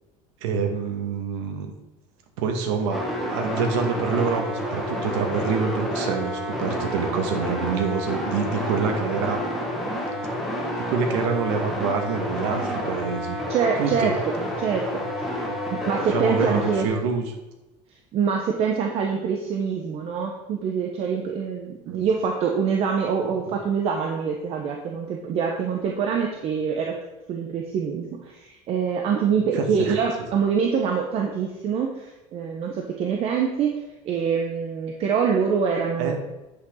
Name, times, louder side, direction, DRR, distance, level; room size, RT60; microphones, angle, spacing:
voice 1, 0.4-1.7 2.4-9.4 10.5-13.4 13.8-14.2 16.1-17.3 21.9-22.0 23.2-23.5 29.5-30.0 36.0-36.2, right 5 dB, 90° right, 4 dB, 2.1 m, -26 dB
sound 1, 2.9-16.8, equal, ahead, 2.1 m, -29 dB
voice 2, 13.5-15.4 15.7-16.9 18.1-27.0 27.3-33.8 34.0-36.2, right 6 dB, 45° right, 2 dB, 1.2 m, -25 dB
10.0 x 8.6 x 4.0 m, 1.1 s
cardioid pair, 150°, 15 cm